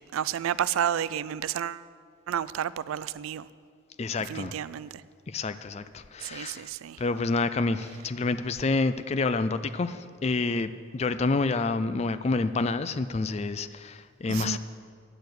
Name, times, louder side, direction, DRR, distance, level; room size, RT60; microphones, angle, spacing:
voice 1, 0.0-1.8 2.3-3.5 4.3-5.0 6.2-7.0 14.3-14.6, right 9 dB, 85° right, 0.3 m, -31 dB
voice 2, 4.0-4.6 5.3-6.7 7.0-14.6, left 3 dB, 30° left, 0.3 m, -28 dB
10.0 x 6.8 x 7.9 m
head